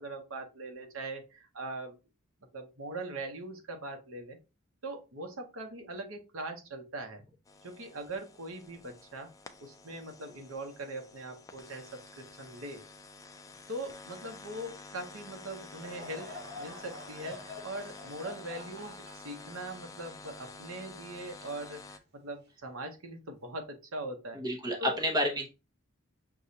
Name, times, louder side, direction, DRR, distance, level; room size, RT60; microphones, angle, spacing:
voice 1, 0.0-2.0 2.5-4.4 4.8-7.2 7.6-9.3 9.6-12.8 13.7-24.4 24.8-25.0, right 2 dB, 80° right, 4 dB, 0.9 m, -41 dB
sound 1, 7.4-22.0, left 3 dB, 15° left, 0.3 m, -50 dB
Laughter / Crowd, 15.7-21.2 21.7-21.8 22.6-22.9, left 2 dB, 50° right, 1.1 m, -47 dB
voice 2, 24.3-25.5, equal, 20° right, 2 dB, 0.8 m, -30 dB
6.6 x 2.3 x 2.7 m, 0.28 s
head